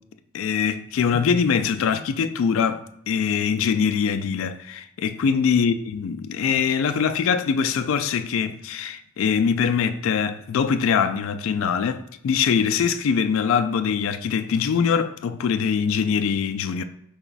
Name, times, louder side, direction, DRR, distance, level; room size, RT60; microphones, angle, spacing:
voice 1, 0.3-16.8, left 6 dB, 70° left, 0.3 m, -23 dB
4.8 x 2.2 x 3.9 m
head